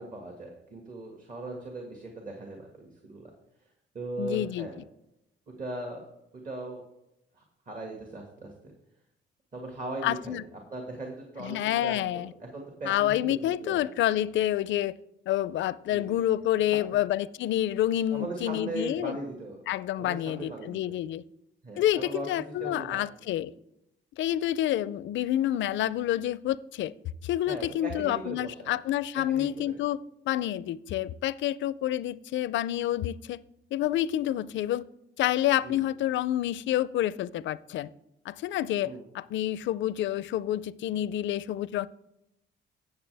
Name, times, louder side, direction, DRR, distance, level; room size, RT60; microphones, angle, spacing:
voice 1, 0.0-3.3 3.9-4.8 5.6-6.0 6.4-6.8 7.3-8.7 9.5-10.4 10.7-13.9 15.9-16.1 16.7-17.0 18.1-19.6 20.0-21.0 21.6-23.0 27.5-28.7 29.3-29.7 35.6-35.8 38.8-39.0, right 2 dB, 40° right, 1.9 m, -39 dB
voice 2, 4.2-4.7 10.0-10.4 11.4-12.3 12.9-14.9 15.3-19.2 19.7-21.2 21.8-23.5 24.2-26.9 27.2-30.0 30.3-33.4 33.7-34.8 35.2-37.9 38.3-41.9, left 12 dB, 70° left, 0.4 m, -28 dB
15.5 x 6.7 x 3.4 m
cardioid pair, 90°, 20 cm